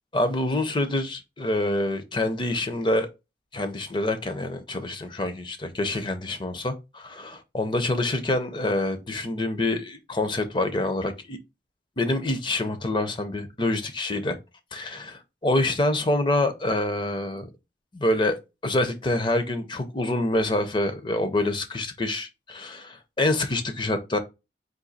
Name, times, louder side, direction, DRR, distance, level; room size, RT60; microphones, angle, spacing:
voice 1, 0.1-3.1 3.5-11.4 12.0-14.4 14.7-17.5 17.9-18.4 18.6-24.2, left 1 dB, 25° left, 0.5 m, -26 dB
3.9 x 2.7 x 3.9 m
head